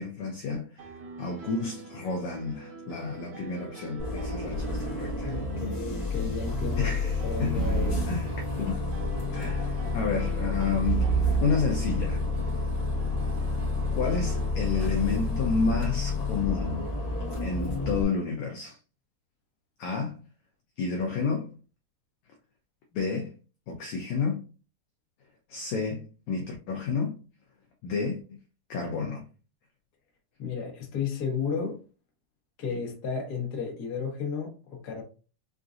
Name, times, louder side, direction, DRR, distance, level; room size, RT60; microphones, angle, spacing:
voice 1, 0.0-5.4 6.8-7.6 8.0-8.3 8.6-8.8 9.3-11.1 11.4-12.2 13.9-16.9 17.4-18.8 19.8-20.2 20.8-21.5 22.9-23.3 23.7-24.4 25.5-27.2 27.8-28.4 28.7-29.3, left 5 dB, 80° left, 1.6 m, -30 dB
Piano, 0.8-14.5, right 4 dB, 75° right, 2.0 m, -43 dB
Bus, 4.0-18.0, left 3 dB, 45° left, 1.1 m, -30 dB
voice 2, 5.2-6.9 7.2-8.0 30.4-31.8 32.6-35.0, left 5 dB, 65° left, 1.0 m, -33 dB
Reker Bass Stabs, 7.5-9.1 10.8-12.6, right 8 dB, 55° right, 2.0 m, -30 dB
5.7 x 2.6 x 2.5 m
omnidirectional pair, 4.1 m